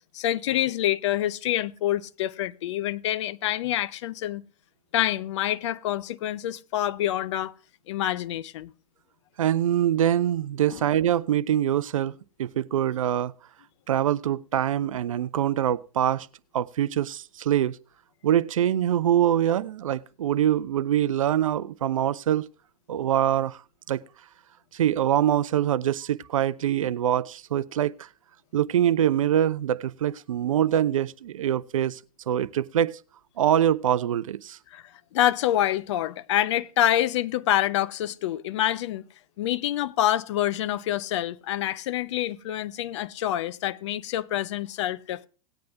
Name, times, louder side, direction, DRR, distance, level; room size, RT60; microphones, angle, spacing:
voice 1, 0.1-4.4 4.9-7.5 7.9-8.7 10.7-10.8 34.7-34.8 35.1-39.0 39.4-45.3, left 12 dB, 50° left, 0.6 m, -26 dB
voice 2, 9.4-12.1 12.4-13.3 13.9-16.3 16.5-17.8 18.2-22.4 22.9-23.6 23.9-24.0 24.7-28.1 28.5-32.0 32.3-33.0 33.4-34.6, right 10 dB, 65° right, 0.5 m, -24 dB
18.5 x 9.3 x 2.4 m
figure-of-eight pair, 105°, 19 cm